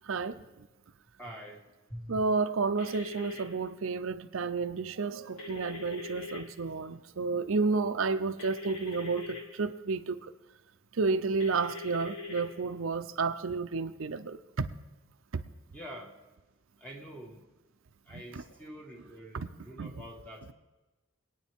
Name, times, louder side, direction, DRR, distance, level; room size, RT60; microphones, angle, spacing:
voice 1, 0.1-0.4 2.1-10.2 11.0-14.7 15.3-15.4 18.1-18.4 19.3-19.5 19.8-19.9, right 4 dB, 80° right, 10 dB, 0.6 m, -31 dB
voice 2, 1.2-1.6 1.9-2.2 15.7-16.1 16.8-17.4 18.1-20.5, equal, 5° left, -1 dB, 2.0 m, -45 dB
sound 1, 2.8-3.4 5.4-6.4 8.4-9.4 11.4-12.4, left 4 dB, 75° left, 4.4 m, -41 dB
24.0 x 9.3 x 3.6 m, 1.1 s
head